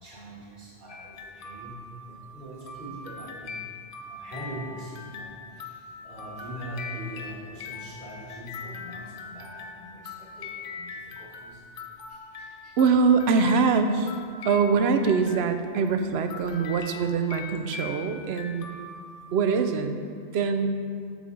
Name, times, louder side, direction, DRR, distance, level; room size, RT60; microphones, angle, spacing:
voice 1, 0.0-1.8 2.0-3.8 4.1-11.6 12.1-12.8, right 1 dB, 45° right, -4 dB, 1.8 m, -42 dB
sound 1, 0.9-15.9 16.3-19.8, left 4 dB, 55° left, 0.8 m, -41 dB
voice 2, 12.8-14.2 14.4-18.7 19.3-20.0 20.3-20.7, right 5 dB, 70° right, 8 dB, 0.8 m, -23 dB
8.3 x 7.0 x 3.8 m, 2.2 s
omnidirectional pair, 1.1 m